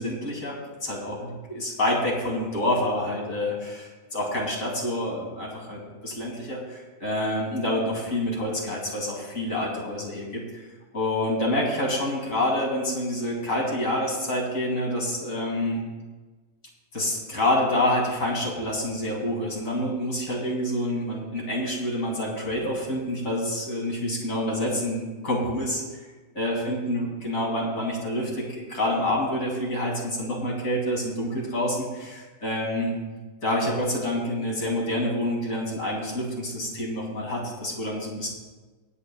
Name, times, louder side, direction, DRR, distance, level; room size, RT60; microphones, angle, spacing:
voice 1, 0.0-10.4 10.9-15.8 16.9-25.8 26.4-32.9 33.4-38.3, left 1 dB, 55° left, -2 dB, 2.9 m, -27 dB
24.0 x 9.0 x 2.3 m, 1.3 s
omnidirectional pair, 1.7 m